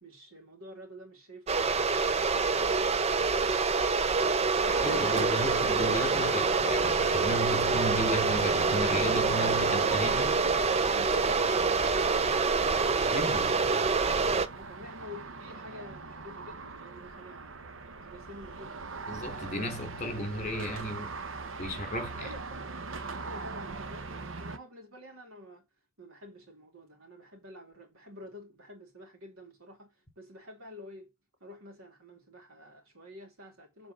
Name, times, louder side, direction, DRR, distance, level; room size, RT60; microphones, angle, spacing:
voice 1, 0.0-1.9 2.1-4.4 9.6-12.8 14.5-17.6 18.0-18.9 22.2-22.4 23.1-25.7 26.0-31.1 31.4-33.9, left 1 dB, 90° right, 2.7 m, -49 dB
sound 1, 1.5-14.5, right 4 dB, 30° right, 0.5 m, -26 dB
sound 2, 4.6-24.6, right 4 dB, 65° right, 0.9 m, -41 dB
voice 2, 4.8-10.4 13.1-13.6 19.1-21.1 21.6-22.3, left 1 dB, 35° left, 3.2 m, -34 dB
7.3 x 3.9 x 6.4 m
head